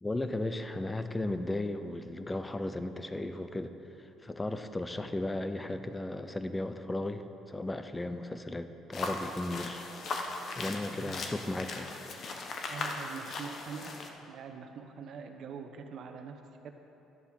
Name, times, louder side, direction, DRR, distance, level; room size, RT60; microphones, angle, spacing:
voice 1, 0.0-3.7 4.0-9.9 10.6-11.9, left 2 dB, 15° left, 9 dB, 0.6 m, -35 dB
sound 1, 8.9-14.1, left 3 dB, 50° left, 1.1 m, -38 dB
voice 2, 10.9-11.2 12.2-12.4 12.7-13.9 14.3-16.7, right 6 dB, 60° right, 6 dB, 1.0 m, -44 dB
12.0 x 7.1 x 6.4 m, 3.0 s
cardioid pair, 95°, 0 cm